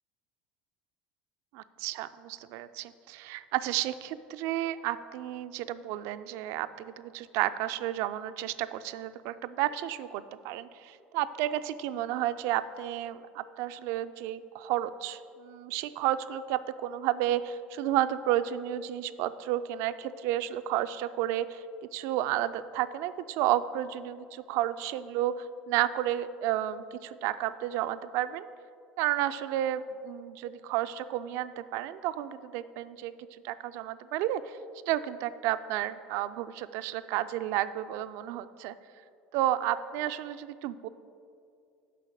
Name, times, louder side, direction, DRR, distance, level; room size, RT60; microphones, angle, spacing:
voice 1, 1.5-21.6 21.9-28.5 29.0-33.1 33.4-34.6 34.9-38.7 39.3-40.9, right 13 dB, 65° right, 13 dB, 0.4 m, -32 dB
7.6 x 5.1 x 6.5 m, 2.4 s
hypercardioid pair, 85°, 5 cm